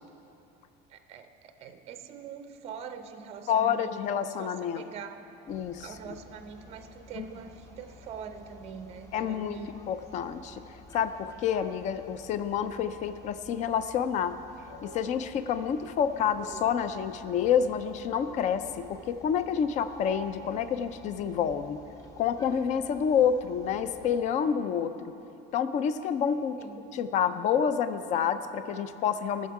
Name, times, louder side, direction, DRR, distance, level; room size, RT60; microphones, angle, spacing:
voice 1, 0.9-5.3 5.8-9.8 15.6-15.9 26.6-26.9, right 6 dB, 30° right, 8 dB, 0.5 m, -44 dB
voice 2, 3.5-4.8 5.5-5.9 9.1-9.6 9.9-10.6 10.9-14.4 14.8-21.8 22.2-25.1 25.5-26.5 26.9-29.5, left 8 dB, 35° left, 12 dB, 0.4 m, -28 dB
sound 1, 5.5-24.2, left 1 dB, 15° left, 0.8 m, -50 dB
17.5 x 6.4 x 4.7 m, 2.9 s
cardioid pair, 160°, 21 cm